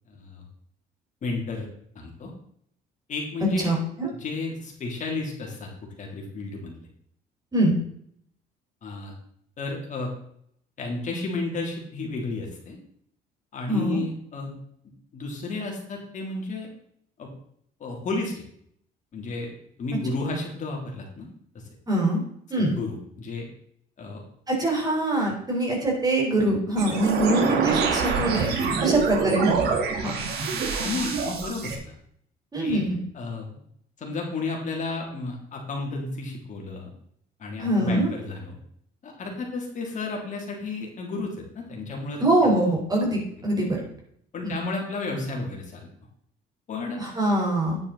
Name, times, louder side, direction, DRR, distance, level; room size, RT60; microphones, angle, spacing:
voice 1, 0.1-0.5 1.2-1.6 1.9-2.3 3.1-3.7 4.2-5.7 6.0-6.7 8.8-9.1 9.6-10.1 10.8-12.8 13.5-14.5 15.1-16.7 17.2-17.3 17.8-18.3 19.1-19.5 19.8-21.3 21.5-21.6 22.5-23.5 24.0-24.2 26.9-27.0 30.1-30.2 30.8-31.9 32.6-32.8 33.1-33.6 34.0-36.9 37.4-38.6 39.0-41.3 41.5-42.5 44.3-45.9 46.7-47.1, left 3 dB, 45° left, 0 dB, 3.4 m, -32 dB
voice 2, 3.6-4.1 7.5-7.7 13.7-14.0 21.9-22.2 22.5-22.7 24.5-28.5 28.8-29.6 30.0-30.1 32.5-33.0 37.6-38.1 42.2-43.8 44.4-44.5 47.0-47.8, right 1 dB, 20° right, -1 dB, 4.7 m, -23 dB
sound 1, 26.8-31.8, right 5 dB, 70° right, 2.5 m, -26 dB
10.0 x 9.4 x 4.2 m, 0.67 s
cardioid pair, 110°, 17 cm